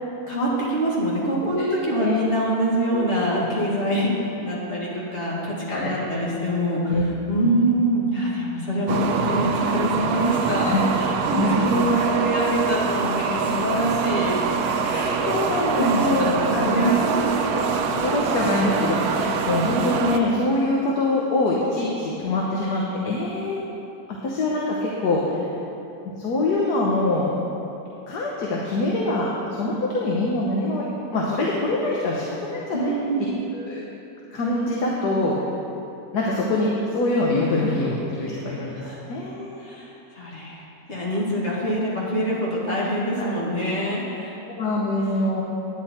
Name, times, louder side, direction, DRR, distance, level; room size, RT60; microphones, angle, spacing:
voice 1, 0.3-6.8 7.3-14.4 14.8-15.1 15.7-17.0 32.7-33.4 38.7-39.0 39.6-40.6 40.9-44.4, right 1 dB, 45° left, -5 dB, 2.3 m, -25 dB
voice 2, 2.0-2.3 2.9-3.4 5.7-5.9 6.9-7.0 7.4-7.6 10.6-10.8 11.3-11.6 11.9-12.0 14.8-17.0 18.0-23.6 24.2-25.5 26.2-27.3 28.1-30.8 31.1-32.9 33.5-33.8 34.3-35.4 36.1-39.6 43.2-43.3 44.5-45.4, left 2 dB, 80° left, -3 dB, 1.6 m, -24 dB
sound 1, 8.9-20.2, right 5 dB, 75° right, 1.1 m, -24 dB
10.0 x 9.5 x 4.3 m, 2.9 s
omnidirectional pair, 1.7 m